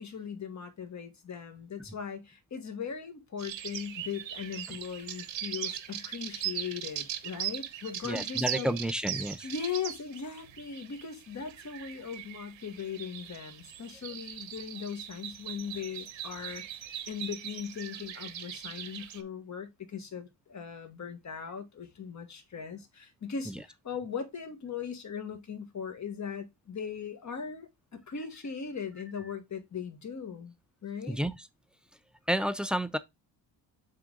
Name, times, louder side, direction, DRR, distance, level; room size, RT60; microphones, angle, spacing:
voice 1, 0.0-8.7 9.4-16.6 17.1-30.5 30.8-31.2, left 7 dB, 35° left, 1.5 m, -39 dB
sound 1, 3.4-19.2, right 11 dB, 70° right, 1.1 m, -40 dB
voice 2, 8.0-9.5 23.5-23.6 31.1-31.3 32.3-33.0, equal, ahead, 0.3 m, -30 dB
7.4 x 3.8 x 3.7 m
cardioid pair, 130°, 47 cm